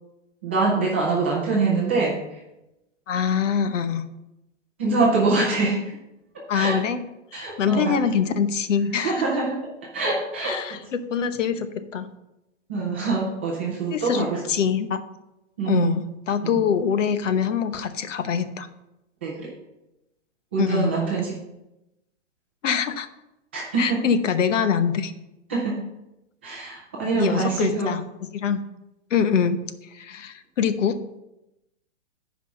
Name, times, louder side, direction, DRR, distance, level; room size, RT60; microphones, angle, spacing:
voice 1, 0.4-2.2 4.8-5.8 6.3-6.8 7.3-8.0 8.9-9.6 9.9-10.8 12.7-14.4 15.6-15.9 16.4-16.6 19.2-19.5 20.5-21.3 23.5-24.0 25.5-25.9 26.4-27.9, right 3 dB, 10° right, -4 dB, 0.5 m, -24 dB
voice 2, 3.1-4.0 6.5-7.0 7.3-9.3 10.4-12.1 13.9-15.0 15.7-18.7 20.6-20.9 22.6-23.1 23.8-25.1 27.1-28.0 28.3-28.6 29.1-29.6 29.9-31.0, left 7 dB, 75° left, 11 dB, 1.0 m, -24 dB
9.2 x 4.9 x 5.7 m, 0.92 s
hypercardioid pair, 175°, 37 cm